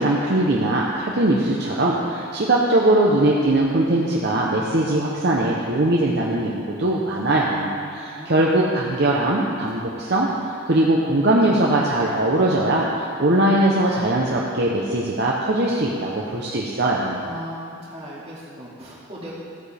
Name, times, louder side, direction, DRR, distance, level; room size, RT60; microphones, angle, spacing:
voice 1, 0.0-17.2, right 1 dB, 55° right, -3 dB, 0.9 m, -21 dB
voice 2, 7.7-8.3 17.1-19.3, equal, 30° right, -7 dB, 2.4 m, -38 dB
14.5 x 8.8 x 3.5 m, 2.4 s
head